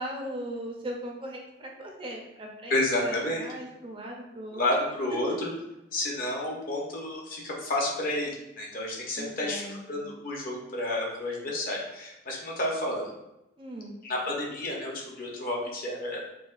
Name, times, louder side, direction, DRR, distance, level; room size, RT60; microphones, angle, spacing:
voice 1, 0.0-4.7 9.2-10.1 13.6-14.0, right 1 dB, 30° right, 0 dB, 0.5 m, -39 dB
voice 2, 2.7-3.4 4.5-5.5 5.9-13.1 14.0-16.2, left 1 dB, 50° left, -2 dB, 0.8 m, -30 dB
4.7 x 2.2 x 2.4 m, 0.90 s
head